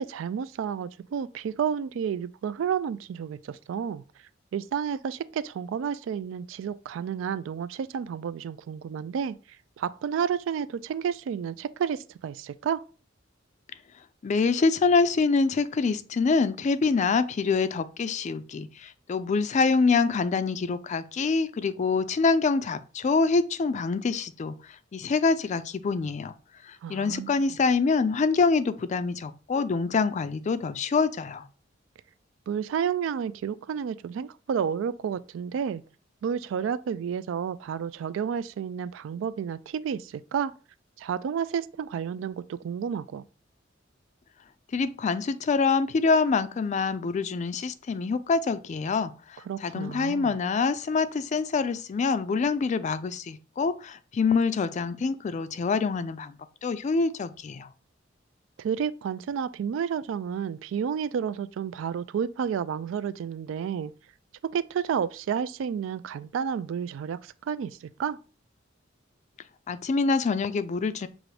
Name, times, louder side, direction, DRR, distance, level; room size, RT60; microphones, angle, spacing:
voice 1, 0.0-4.0 4.5-9.4 9.8-12.8 26.8-27.3 32.5-35.8 36.2-40.5 41.0-43.2 49.5-50.4 58.6-63.9 64.4-68.2, right 7 dB, 85° right, 0.3 m, -31 dB
voice 2, 14.2-24.5 24.9-26.3 26.7-31.4 44.7-56.4 56.6-57.7 69.7-71.1, left 4 dB, 40° left, 0.3 m, -25 dB
6.1 x 2.5 x 3.2 m
head